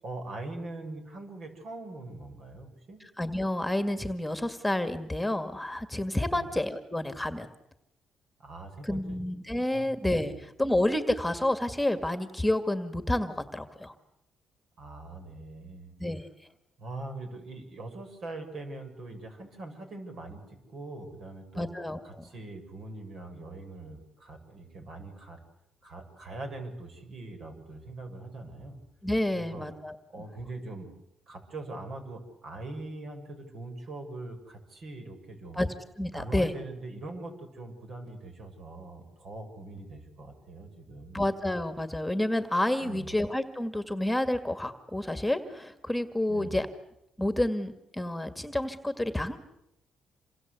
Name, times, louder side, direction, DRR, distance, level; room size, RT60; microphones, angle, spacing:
voice 1, 0.0-3.0 6.3-6.5 8.4-9.2 9.7-9.9 10.2-10.4 14.8-15.9 16.8-21.7 22.0-25.4 25.8-28.8 29.3-29.7 30.1-30.9 31.3-35.7 36.1-41.2 42.8-43.1 46.3-46.6, right 2 dB, 60° right, 5 dB, 7.3 m, -42 dB
voice 2, 3.2-7.5 8.8-13.9 16.0-16.3 21.6-22.3 29.0-30.0 35.5-35.7 36.0-36.5 41.1-46.7 47.2-49.4, left 1 dB, 5° left, 9 dB, 2.0 m, -29 dB
28.0 x 25.5 x 8.4 m, 0.86 s
cardioid pair, 90°, 0 cm